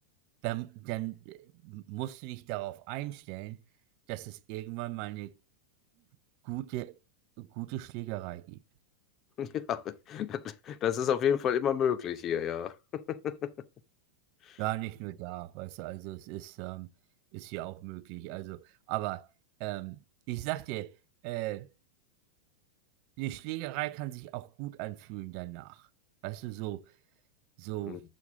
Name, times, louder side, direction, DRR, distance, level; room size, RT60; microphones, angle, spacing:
voice 1, 0.4-3.6 4.1-5.3 6.4-7.0 7.4-8.6 14.6-16.9 17.3-19.3 19.6-21.0 21.2-21.7 23.2-25.9 26.2-26.9 27.6-28.0, right 17 dB, 50° right, 0.5 m, -37 dB
voice 2, 9.4-13.5 14.4-14.6 27.8-28.0, left 9 dB, 35° left, 0.7 m, -31 dB
7.1 x 6.4 x 3.6 m
hypercardioid pair, 95°, 0 cm